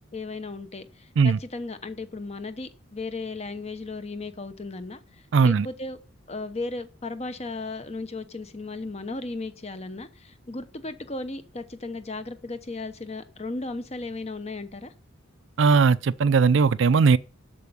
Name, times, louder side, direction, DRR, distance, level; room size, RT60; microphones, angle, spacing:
voice 1, 0.1-6.0 6.3-14.9, left 3 dB, 30° left, 0.9 m, -35 dB
voice 2, 5.3-5.7 15.6-17.2, right 5 dB, 60° right, 0.4 m, -18 dB
8.3 x 7.0 x 7.0 m
head